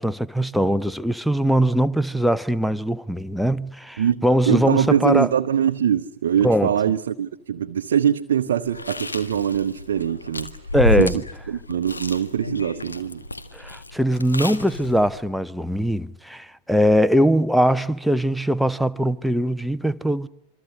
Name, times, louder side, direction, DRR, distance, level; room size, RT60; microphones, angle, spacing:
voice 1, 0.0-5.3 6.4-6.7 10.7-11.2 13.5-20.3, equal, ahead, 0.9 m, -21 dB
voice 2, 4.0-10.6 11.0-11.2 11.5-13.3, right 9 dB, 60° right, 0.8 m, -23 dB
Chewing mastication, 8.6-15.2, left 2 dB, 80° left, 1.7 m, -30 dB
27.0 x 25.0 x 6.5 m
figure-of-eight pair, 90°, 0 cm